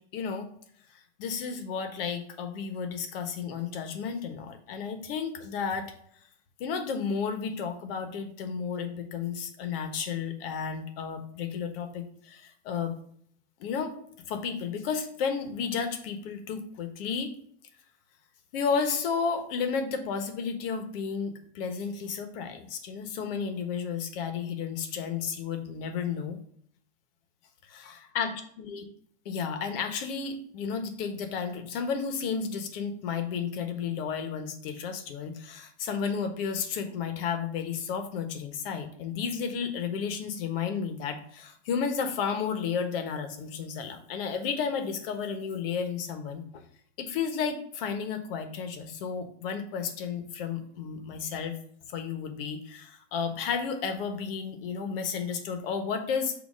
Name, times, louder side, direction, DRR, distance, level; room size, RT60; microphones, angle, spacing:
voice 1, 0.1-0.5 1.2-5.8 6.6-12.9 13.6-13.9 14.3-17.3 18.5-26.4 27.7-28.8 29.2-46.6 47.0-51.6 51.9-56.3, left 6 dB, 50° left, 7 dB, 1.2 m, -32 dB
6.4 x 2.8 x 5.2 m, 0.64 s
hypercardioid pair, 135°, 37 cm